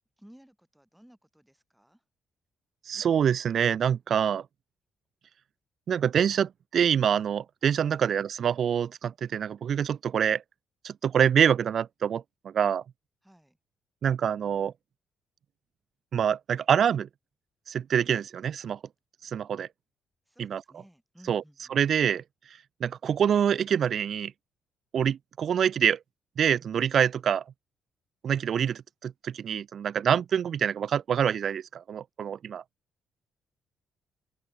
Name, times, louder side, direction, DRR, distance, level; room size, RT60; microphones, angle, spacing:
voice 1, 0.2-2.0 13.2-13.6 20.3-21.8, equal, 5° right, 3.1 m, -57 dB
voice 2, 2.9-4.5 5.9-10.4 10.8-12.8 14.0-14.7 16.1-17.1 17.7-18.8 19.2-19.7 20.4-20.6 21.3-21.4 21.7-22.2 22.8-24.3 24.9-26.0 26.4-27.4 28.2-32.6, right 8 dB, 60° right, 0.4 m, -26 dB
cardioid pair, 90°, 0 cm